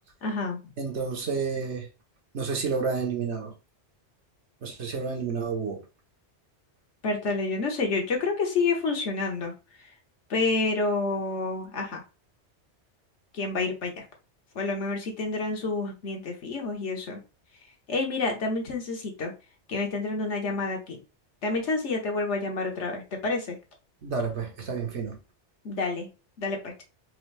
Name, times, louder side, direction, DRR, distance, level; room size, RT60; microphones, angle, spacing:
voice 1, 0.2-0.6 7.0-9.5 10.3-12.0 13.3-14.0 14.5-17.2 17.9-19.3 19.7-21.0 21.4-23.6 25.6-26.1 26.4-26.8, left 3 dB, 85° left, 1.5 m, -28 dB
voice 2, 0.8-1.9 2.3-3.5 4.6-5.8 24.0-25.2, right 5 dB, 80° right, 1.4 m, -30 dB
4.6 x 2.6 x 3.3 m
omnidirectional pair, 1.2 m